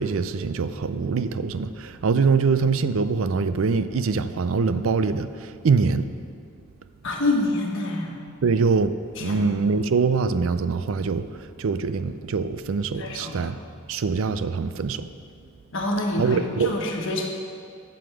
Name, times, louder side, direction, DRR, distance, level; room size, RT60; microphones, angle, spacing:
voice 1, 0.0-6.1 8.4-8.9 9.2-11.3 11.6-13.6 13.9-15.1 16.2-16.7, right 4 dB, 65° right, 12 dB, 0.4 m, -23 dB
voice 2, 7.0-8.1 9.2-9.5 13.0-13.5 15.7-17.3, left 2 dB, 60° left, 1 dB, 1.3 m, -26 dB
11.0 x 7.1 x 5.0 m, 2.3 s
head